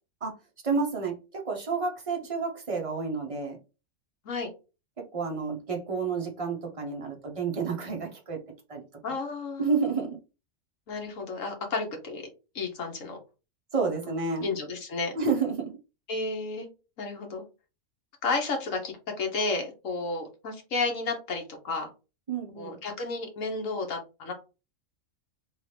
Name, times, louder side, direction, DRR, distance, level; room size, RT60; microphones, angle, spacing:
voice 1, 0.6-3.6 5.0-8.4 8.7-8.8 9.6-10.2 13.7-14.5 15.1-15.7 22.3-22.7, right 4 dB, 30° right, 1 dB, 0.8 m, -30 dB
voice 2, 9.0-9.7 10.9-12.2 12.5-13.2 14.4-15.1 16.1-16.7 17.0-17.4 18.2-21.9 22.6-24.3, left 3 dB, 70° left, 3 dB, 1.5 m, -32 dB
3.7 x 3.1 x 3.2 m, 0.30 s
omnidirectional pair, 1.4 m